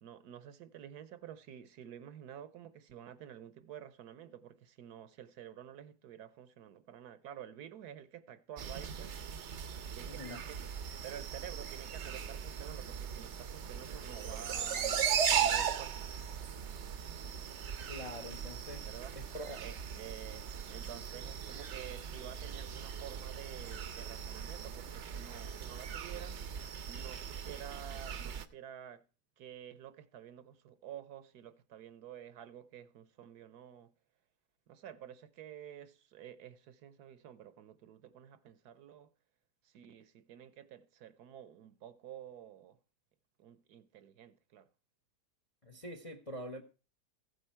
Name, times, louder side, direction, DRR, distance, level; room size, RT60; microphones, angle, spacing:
voice 1, 0.0-9.1 9.9-10.7 11.0-16.1 18.9-19.1 19.6-26.4 26.9-29.0 29.4-33.9 34.7-39.1 39.6-42.8 43.4-44.7, right 10 dB, 70° right, 1.2 m, -50 dB
sound 1, 8.6-28.5, right 8 dB, 55° right, 0.8 m, -38 dB
voice 2, 10.0-10.4 17.9-18.8 19.1-19.6 45.6-46.6, equal, 30° left, 0.6 m, -45 dB
15.0 x 8.1 x 4.4 m
omnidirectional pair, 1.8 m